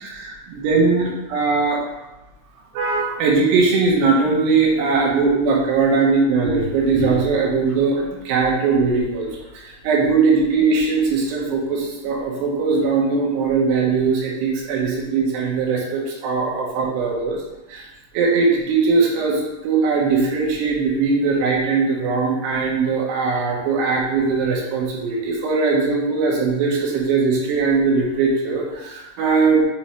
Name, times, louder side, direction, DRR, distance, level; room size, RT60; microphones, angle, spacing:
voice 1, 0.0-1.8 2.7-17.4 17.7-17.9 18.1-29.6, right 4 dB, 80° right, -2 dB, 3.2 m, -20 dB
7.1 x 3.2 x 4.3 m, 1.0 s
omnidirectional pair, 4.9 m